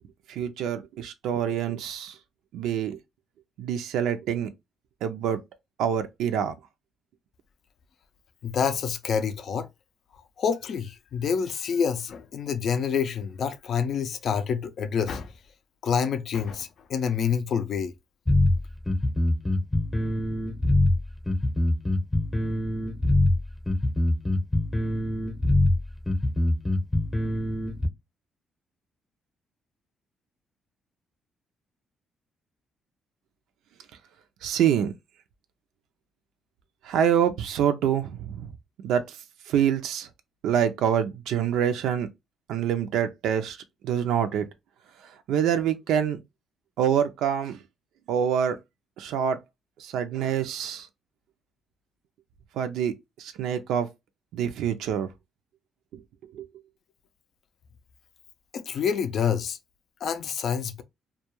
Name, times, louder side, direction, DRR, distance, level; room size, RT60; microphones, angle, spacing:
voice 1, 0.3-2.2 2.5-3.0 3.6-4.5 5.0-5.4 5.8-6.5 34.4-34.9 36.8-38.5 38.8-39.2 39.5-40.1 40.4-42.1 42.5-43.6 43.8-44.5 45.3-46.2 46.8-47.6 48.1-48.6 49.0-49.4 49.8-50.9 52.5-53.9 54.3-55.1 55.9-56.0 56.3-56.5, right 9 dB, 85° right, 0.4 m, -26 dB
voice 2, 8.4-9.7 10.4-15.3 15.8-17.9 58.5-59.6 60.0-60.8, left 7 dB, 60° left, 0.4 m, -27 dB
sound 1, 18.3-27.9, left 1 dB, 20° left, 0.7 m, -24 dB
2.3 x 2.2 x 2.9 m
cardioid pair, 90°, 0 cm